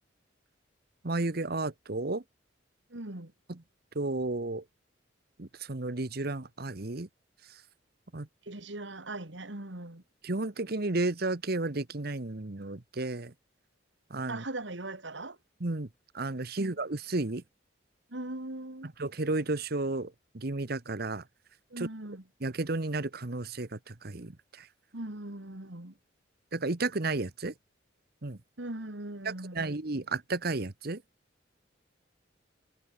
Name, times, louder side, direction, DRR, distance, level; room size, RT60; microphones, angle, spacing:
voice 1, 1.0-2.2 3.5-3.6 3.9-4.6 5.4-7.1 7.5-7.6 8.1-8.3 10.2-13.3 14.1-14.4 15.6-15.9 16.1-17.4 18.8-21.2 21.8-21.9 22.4-24.7 26.5-27.5 28.2-28.4 29.2-31.0, right 2 dB, 55° right, 1.2 m, -33 dB
voice 2, 2.9-3.3 8.4-10.0 14.3-15.4 16.6-16.7 18.1-18.9 21.7-22.2 24.9-25.9 28.6-29.7, right 2 dB, 70° right, 2.6 m, -40 dB
head